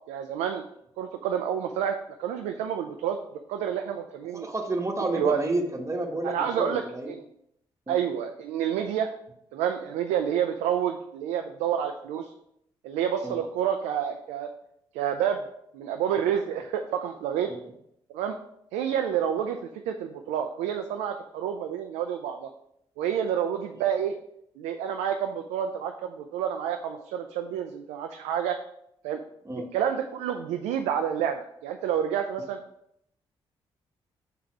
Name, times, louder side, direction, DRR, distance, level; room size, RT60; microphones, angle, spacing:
voice 1, 0.1-0.6 1.0-3.2 3.5-4.5 5.0-5.4 6.2-7.2 7.9-9.1 9.5-12.3 12.8-14.5 14.9-15.4 15.7-17.5 18.1-18.4 18.7-22.5 23.0-24.2 24.6-28.6 29.0-29.2 29.7-32.6, right 9 dB, 90° right, 5 dB, 0.4 m, -29 dB
voice 2, 4.3-7.1 7.9-8.0 13.2-13.4 17.5-17.6 29.4-29.7, right 2 dB, 25° right, 3 dB, 1.2 m, -30 dB
5.5 x 4.0 x 4.7 m, 0.75 s
supercardioid pair, 50°, 12 cm